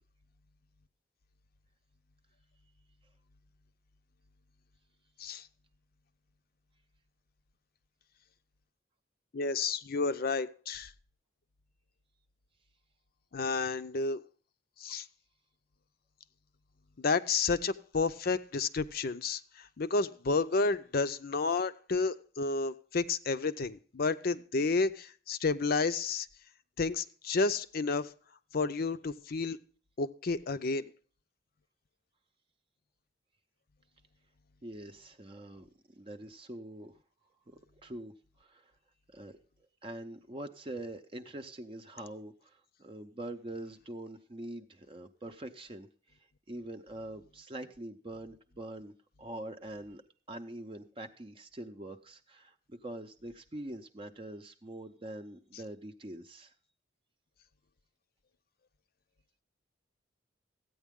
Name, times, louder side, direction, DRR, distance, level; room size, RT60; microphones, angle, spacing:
voice 1, 9.3-10.9 13.3-14.2 14.8-15.1 17.0-26.3 26.8-28.1 28.5-29.6 30.0-30.9, left 4 dB, 55° left, 0.6 m, -31 dB
voice 2, 34.6-35.7 36.0-37.0 37.5-38.1 38.4-38.7 39.1-39.4 39.8-46.2 46.5-50.0 50.3-56.5, right 1 dB, 30° right, 0.6 m, -44 dB
14.0 x 9.1 x 3.6 m
head